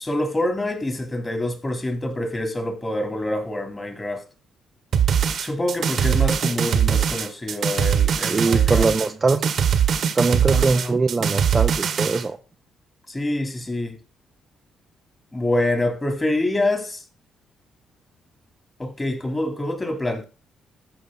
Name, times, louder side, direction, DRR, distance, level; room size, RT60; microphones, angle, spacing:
voice 1, 0.0-4.2 5.4-8.9 10.5-11.0 13.1-14.0 15.3-17.0 18.8-20.2, left 1 dB, 20° left, 3.2 m, -26 dB
sound 1, 4.9-12.2, right 8 dB, 60° right, 1.4 m, -21 dB
voice 2, 8.3-9.5 10.1-12.4, right 3 dB, 25° right, 0.8 m, -22 dB
14.0 x 5.7 x 3.8 m
cardioid pair, 90°, 0 cm